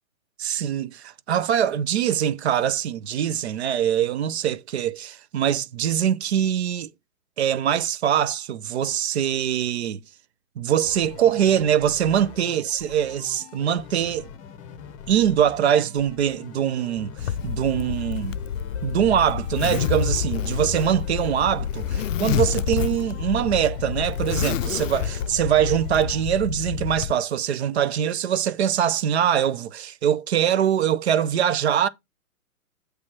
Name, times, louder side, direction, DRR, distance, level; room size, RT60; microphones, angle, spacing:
voice 1, 0.4-6.9 7.4-10.0 10.6-14.3 15.1-18.4 18.8-31.9, right 9 dB, 50° right, 0.6 m, -23 dB
sound 1, 10.8-26.2, left 7 dB, 25° left, 0.7 m, -43 dB
Zipper (clothing), 17.2-27.1, left 9 dB, 60° left, 0.5 m, -28 dB
8.1 x 3.3 x 5.9 m
hypercardioid pair, 130°, 43 cm